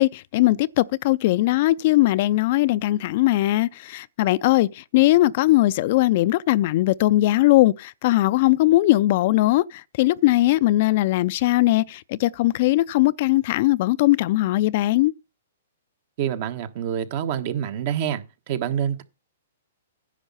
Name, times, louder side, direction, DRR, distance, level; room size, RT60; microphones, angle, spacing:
voice 1, 0.0-15.1, left 17 dB, 50° left, 0.4 m, -20 dB
voice 2, 16.2-19.0, right 9 dB, 50° right, 1.3 m, -27 dB
10.0 x 6.3 x 5.6 m
hypercardioid pair, 130°, 0 cm